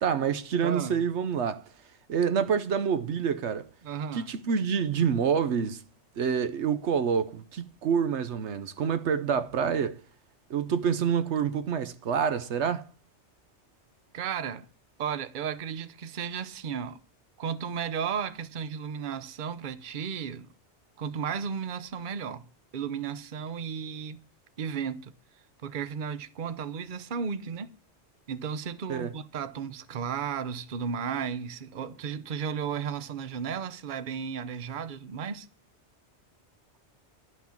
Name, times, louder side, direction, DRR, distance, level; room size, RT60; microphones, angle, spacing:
voice 1, 0.0-1.6 2.1-3.7 4.1-5.8 6.2-10.0 10.5-12.8 28.9-29.1, right 7 dB, 75° right, 1.1 m, -27 dB
voice 2, 0.6-1.0 3.8-4.3 14.1-14.7 15.0-17.0 17.4-20.5 21.0-22.5 22.7-24.2 24.6-25.1 25.6-27.7 28.3-35.5, right 7 dB, 50° right, 0.9 m, -34 dB
11.5 x 6.0 x 8.6 m
omnidirectional pair, 1.2 m